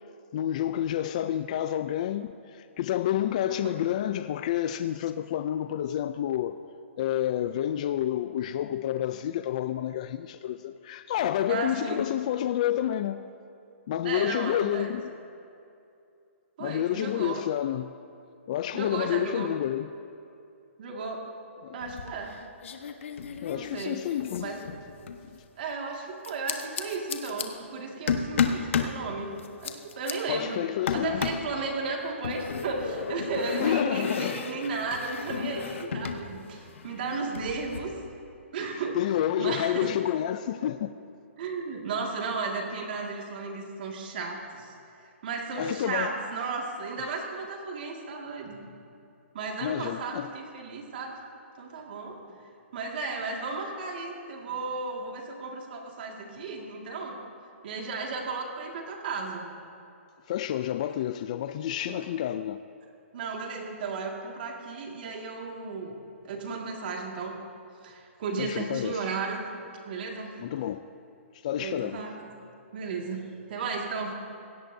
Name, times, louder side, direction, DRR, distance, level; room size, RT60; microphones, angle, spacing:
voice 1, 0.3-6.6 7.0-13.2 13.9-15.1 16.6-18.0 18.5-19.9 21.6-21.8 23.4-24.5 25.3-25.4 30.3-31.2 33.6-34.4 38.7-40.9 45.6-46.1 49.6-50.3 60.3-62.6 68.4-69.1 70.4-70.9 71.4-72.0, left 11 dB, 30° left, 0.3 m, -29 dB
voice 2, 3.5-3.8 11.5-12.0 14.0-14.9 16.6-17.4 18.7-19.6 20.8-21.3 21.7-22.4 23.5-24.0 24.4-24.6 25.6-29.3 29.6-30.6 30.9-37.9 38.5-39.9 41.4-44.7 45.0-48.6 49.3-51.2 51.6-52.2 52.7-57.2 57.6-59.5 61.9-62.0 63.1-65.9 66.2-67.3 67.8-69.5 69.8-70.5 71.6-72.3 72.7-74.1, right 4 dB, 45° right, 2.0 m, -34 dB
sound 1, 21.8-22.4 22.6-25.2 26.2-27.5 28.1-29.0 29.4-30.1 30.9-31.5 32.2-36.2 36.5-37.8, left 6 dB, 65° left, 1.2 m, -32 dB
22.5 x 17.0 x 2.7 m
hypercardioid pair, 170°, 7 cm